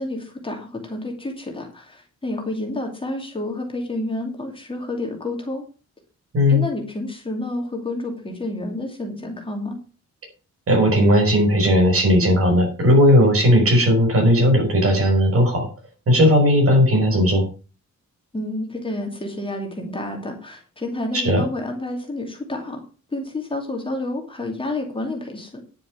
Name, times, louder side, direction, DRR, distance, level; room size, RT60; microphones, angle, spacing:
voice 1, 0.0-5.6 6.5-9.8 18.3-22.8 23.1-25.6, left 2 dB, 20° left, 1 dB, 2.6 m, -29 dB
voice 2, 10.7-15.7 16.1-17.4 21.1-21.4, equal, 50° right, 2 dB, 5.6 m, -16 dB
10.5 x 7.4 x 6.9 m, 0.35 s
wide cardioid pair, 170°, 29 cm